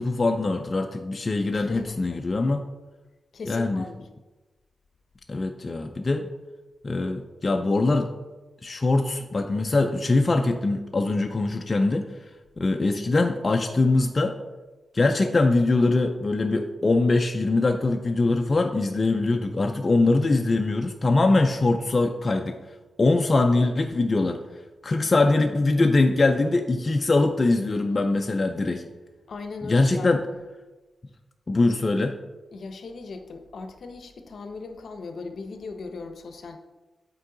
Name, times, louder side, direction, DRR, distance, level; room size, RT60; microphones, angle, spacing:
voice 1, 0.0-2.7 3.5-3.8 5.3-6.3 6.8-8.1 8.6-12.1 12.6-14.4 14.9-22.6 23.0-24.4 24.8-28.8 29.6-30.2 31.5-32.1, left 2 dB, 30° left, 4 dB, 0.4 m, -22 dB
voice 2, 1.5-2.2 3.3-4.1 29.3-30.2 32.5-36.6, left 3 dB, 65° left, 7 dB, 0.7 m, -38 dB
8.3 x 4.5 x 3.8 m, 1.1 s
wide cardioid pair, 165°, 0 cm